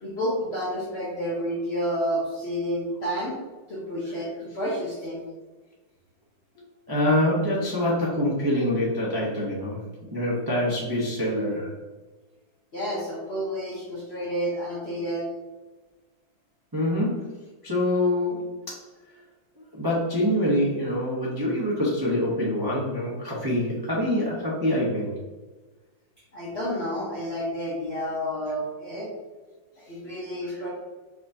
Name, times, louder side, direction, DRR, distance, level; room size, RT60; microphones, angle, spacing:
voice 1, 0.0-3.4 3.7-5.2 12.7-15.3 26.3-29.1 29.8-30.7, equal, 50° left, -6 dB, 0.8 m, -30 dB
voice 2, 6.9-9.8 10.1-11.7 16.7-17.3 17.6-18.8 19.8-25.1, left 1 dB, 25° right, -7 dB, 0.4 m, -25 dB
5.0 x 3.4 x 2.7 m, 1.2 s
omnidirectional pair, 2.1 m